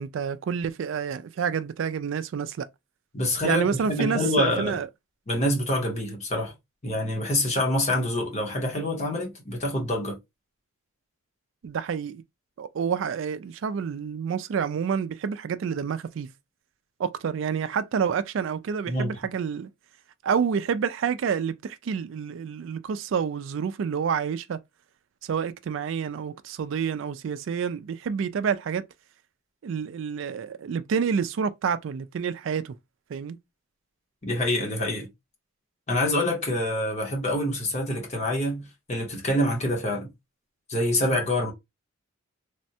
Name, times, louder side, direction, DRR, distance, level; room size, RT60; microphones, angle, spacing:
voice 1, 0.0-2.7 3.4-4.9 11.6-12.2 12.6-16.3 17.0-19.7 20.2-24.6 25.2-28.8 29.6-32.7 33.1-33.4, right 6 dB, 60° right, 0.3 m, -28 dB
voice 2, 3.1-4.8 5.3-6.5 6.8-10.2 18.9-19.2 34.2-35.1 35.9-40.1 40.7-41.5, left 1 dB, 30° left, 0.9 m, -26 dB
3.4 x 2.1 x 2.7 m
head